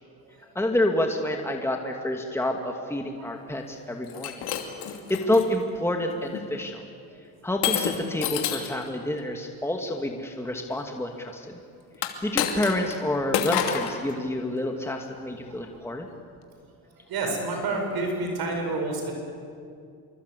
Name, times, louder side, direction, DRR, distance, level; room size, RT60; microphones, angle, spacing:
voice 1, 0.5-4.4 5.1-6.8 7.4-11.6 12.0-16.1, left 1 dB, 5° left, 2 dB, 2.4 m, -28 dB
Shatter, 4.1-5.5 6.1-6.4 7.6-8.8 11.9-13.0 13.3-14.0, left 9 dB, 80° left, 2.7 m, -28 dB
voice 2, 17.1-19.1, right 2 dB, 65° right, 3 dB, 7.9 m, -28 dB
26.5 x 23.0 x 8.4 m, 2.3 s
supercardioid pair, 80°, 39 cm